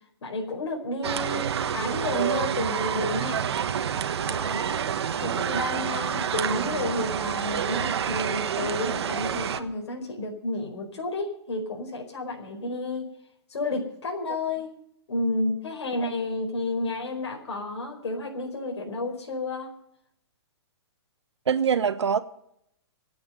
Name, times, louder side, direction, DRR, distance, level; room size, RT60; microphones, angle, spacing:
voice 1, 0.2-3.4 4.3-4.8 5.2-13.0 13.5-14.7 15.1-19.7, left 2 dB, 90° left, 4.8 m, -31 dB
sound 1, 1.0-9.6, right 8 dB, 70° right, 1.4 m, -28 dB
voice 2, 21.5-22.2, right 7 dB, 90° right, 1.4 m, -24 dB
26.0 x 8.7 x 5.5 m
hypercardioid pair, 160°, 14 cm